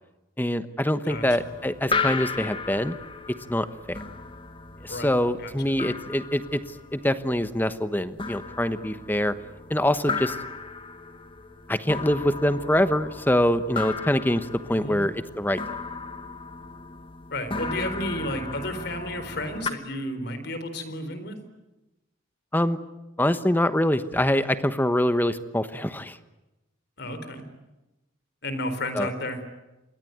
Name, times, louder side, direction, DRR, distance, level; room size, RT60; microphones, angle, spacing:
voice 1, 0.4-2.9 3.3-4.0 4.8-6.6 6.9-9.4 9.7-10.4 11.7-15.6 22.5-22.8 23.2-26.2 28.9-29.1, left 1 dB, 10° left, 12 dB, 1.1 m, -24 dB
sound 1, 1.1-19.7, left 4 dB, 25° left, 1.6 m, -35 dB
voice 2, 14.7-15.0 17.3-21.4 27.0-27.4 28.4-29.4, left 1 dB, 55° left, 10 dB, 4.2 m, -32 dB
27.5 x 22.0 x 9.3 m, 1.0 s
head